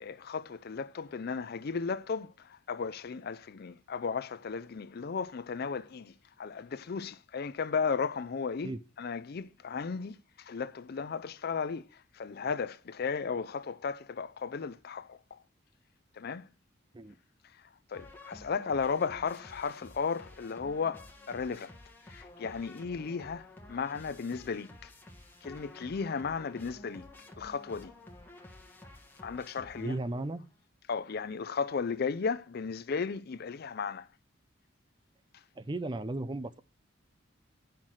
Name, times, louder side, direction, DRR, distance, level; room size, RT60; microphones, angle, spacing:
voice 1, 0.0-15.4 16.1-16.5 17.6-21.8 22.1-24.9 25.4-27.0 27.4-27.9 29.2-30.0 30.9-34.1, left 5 dB, 50° left, 0.5 m, -35 dB
sound 1, 17.9-30.3, left 1 dB, 10° left, 1.4 m, -52 dB
voice 2, 29.7-30.5 35.6-36.6, right 2 dB, 25° right, 0.5 m, -35 dB
8.9 x 5.9 x 6.2 m
head